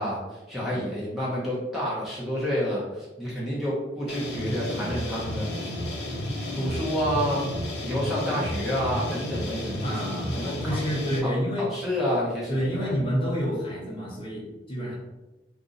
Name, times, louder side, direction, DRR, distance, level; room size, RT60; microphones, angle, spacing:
voice 1, 0.0-5.7 6.5-7.5 7.8-10.5 11.2-11.3 11.6-13.0, equal, ahead, -8 dB, 0.7 m, -29 dB
sound 1, 4.1-11.2, left 1 dB, 70° left, 0.8 m, -32 dB
voice 2, 9.8-11.7 12.5-15.0, equal, 30° left, -5 dB, 0.9 m, -29 dB
2.6 x 2.5 x 3.9 m, 1.1 s
head